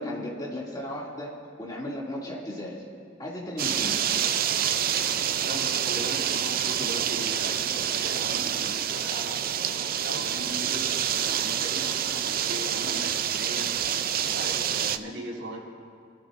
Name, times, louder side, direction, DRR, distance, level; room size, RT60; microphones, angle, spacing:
voice 1, 0.0-2.8 3.2-4.1, left 1 dB, 20° left, -4 dB, 2.6 m, -35 dB
sound 1, 3.6-15.0, right 9 dB, 50° right, 0.5 m, -27 dB
voice 2, 5.4-10.8 11.3-13.7 14.1-15.6, right 1 dB, 90° right, -4 dB, 4.1 m, -39 dB
26.0 x 14.0 x 2.6 m, 2.1 s
head